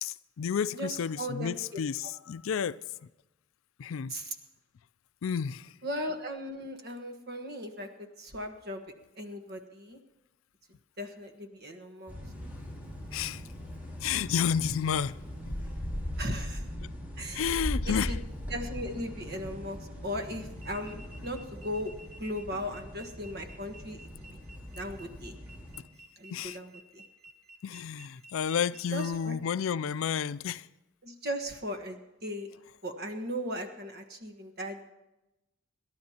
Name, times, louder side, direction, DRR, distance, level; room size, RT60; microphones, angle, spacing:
voice 1, 0.0-2.8 3.8-4.1 5.2-5.7 13.1-13.4 14.0-15.2 17.3-18.2 26.3-26.6 27.6-30.7, left 7 dB, 75° left, 0.4 m, -31 dB
voice 2, 0.7-1.5 2.0-2.1 4.1-4.3 5.8-8.8 9.2-10.0 11.0-12.1 16.2-16.6 17.2-17.6 17.9-18.2 18.5-21.9 22.2-24.0 24.3-24.4 24.7-25.3 26.2-27.0 28.9-29.4 31.0-32.5 32.8-34.9, equal, 50° right, 1.4 m, -37 dB
sound 1, 12.1-25.8, equal, 10° right, 4.6 m, -39 dB
sound 2, 20.5-29.1, right 1 dB, 85° right, 1.5 m, -53 dB
27.5 x 12.5 x 2.9 m
head